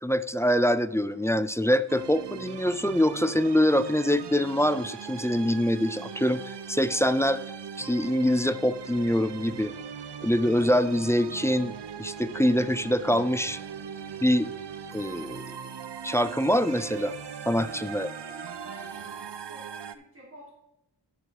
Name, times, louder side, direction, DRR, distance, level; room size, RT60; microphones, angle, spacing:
voice 1, 0.0-7.4 7.8-9.7 10.2-13.6 14.2-14.5 14.9-15.6 16.0-17.1 17.5-18.1, equal, 5° left, 13 dB, 0.4 m, -24 dB
sound 1, 1.9-20.0, right 7 dB, 65° right, 0.6 m, -40 dB
voice 2, 17.8-19.7 19.9-20.5, right 2 dB, 30° right, -8 dB, 3.9 m, -50 dB
8.3 x 6.2 x 6.0 m, 0.89 s
wide cardioid pair, 70°, 45 cm